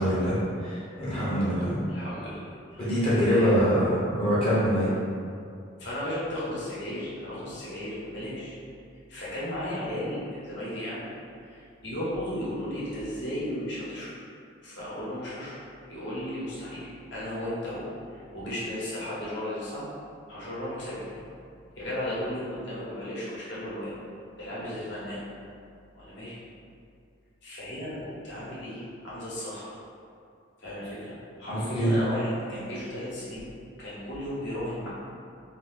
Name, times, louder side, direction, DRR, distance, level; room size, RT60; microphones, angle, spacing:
voice 1, 0.0-1.8 2.8-4.9 31.5-32.0, equal, 30° left, -10 dB, 0.8 m, -24 dB
voice 2, 1.3-2.4 2.7-3.6 5.8-8.5 9.1-11.1 11.4-14.1 14.6-15.6 15.9-19.9 20.3-21.1 21.7-23.9 24.4-25.2 25.9-26.4 27.4-29.8 30.6-33.5 33.8-34.9, left 1 dB, 55° left, -9 dB, 1.0 m, -35 dB
2.7 x 2.6 x 3.7 m, 2.4 s
head